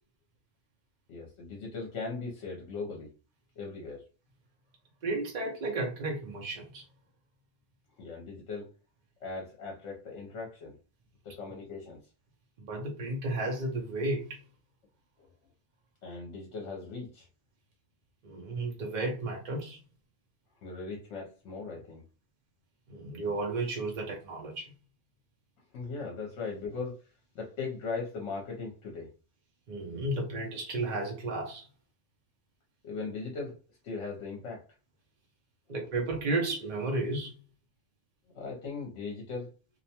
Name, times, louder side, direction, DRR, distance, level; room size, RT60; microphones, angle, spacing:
voice 1, 1.1-3.1 3.6-4.0 8.0-8.7 9.2-10.8 11.2-12.0 16.0-17.3 20.6-22.0 25.7-27.1 27.3-29.1 32.8-33.5 33.8-34.6 38.3-39.5, left 4 dB, 65° left, 0.9 m, -38 dB
voice 2, 5.0-6.8 12.6-14.4 18.2-19.8 22.9-24.7 29.7-31.7 35.7-37.3, right 2 dB, 60° right, 0.4 m, -33 dB
2.5 x 2.1 x 2.7 m
omnidirectional pair, 1.4 m